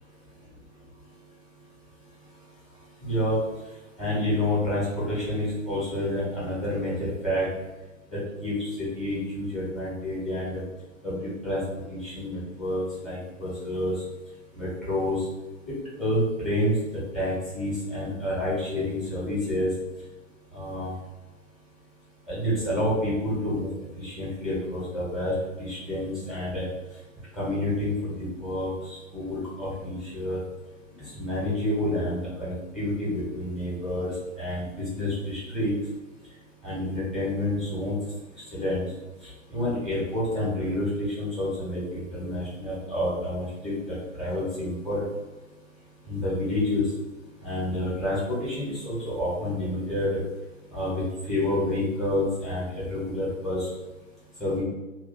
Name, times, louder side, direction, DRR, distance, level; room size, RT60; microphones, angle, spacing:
voice 1, 3.0-3.4 4.0-7.5 8.1-8.5 8.9-10.6 11.0-11.6 11.9-13.9 14.6-15.2 16.0-16.7 17.1-19.7 20.5-20.9 22.3-23.7 24.0-26.6 27.3-30.4 31.1-34.1 34.4-35.7 36.6-37.9 38.5-38.8 39.5-45.1 46.1-46.8 47.4-50.1 50.7-51.0 51.3-53.7 54.4-54.6, left 1 dB, ahead, -9 dB, 1.3 m, -28 dB
3.0 x 2.3 x 4.3 m, 1.1 s
figure-of-eight pair, 120°, 40 cm